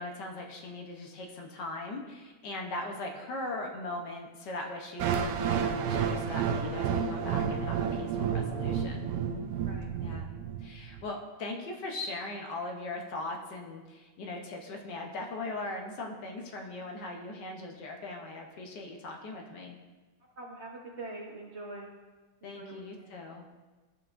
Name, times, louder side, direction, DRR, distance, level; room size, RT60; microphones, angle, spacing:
voice 1, 0.0-9.1 10.0-10.3 10.6-19.8 22.4-23.4, left 2 dB, 60° left, 2 dB, 1.4 m, -39 dB
sound 1, 5.0-11.0, right 7 dB, 75° right, 1.0 m, -31 dB
voice 2, 20.4-21.9 22.4-23.1, right 2 dB, 50° right, -1 dB, 0.8 m, -44 dB
13.5 x 5.6 x 2.5 m, 1.2 s
omnidirectional pair, 2.4 m